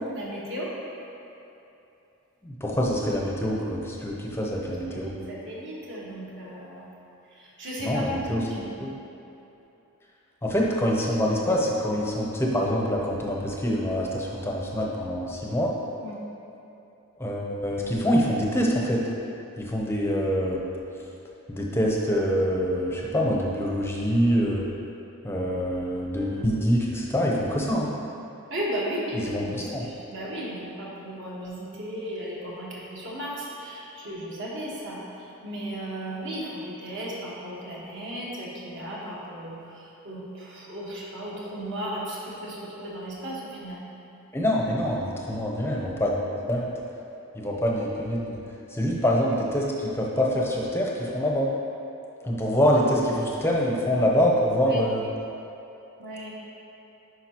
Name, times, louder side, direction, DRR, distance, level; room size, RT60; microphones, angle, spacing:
voice 1, 0.1-0.7 4.9-6.9 7.3-8.7 16.0-16.2 28.5-43.8 54.6-54.9 56.0-56.3, equal, 55° right, -5 dB, 1.4 m, -35 dB
voice 2, 2.4-5.1 7.8-8.4 8.8-8.9 10.4-15.7 17.2-19.0 19.6-20.6 21.5-24.7 25.2-27.9 29.2-29.9 44.3-46.7 47.3-48.4 48.7-51.5 52.2-55.0, equal, 10° left, -2 dB, 0.6 m, -25 dB
10.0 x 4.9 x 2.9 m, 2.9 s
head